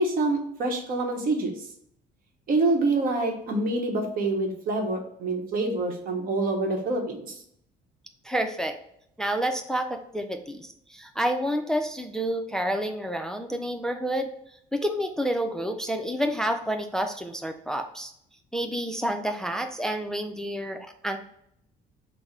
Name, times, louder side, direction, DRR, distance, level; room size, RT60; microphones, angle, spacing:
voice 1, 0.0-1.5 2.5-7.3, right 2 dB, 60° right, 3 dB, 0.9 m, -26 dB
voice 2, 8.2-8.8 9.2-14.3 14.7-18.1 18.5-21.2, equal, 5° left, 5 dB, 0.3 m, -29 dB
3.6 x 2.0 x 4.1 m, 0.72 s
cardioid pair, 110°, 17 cm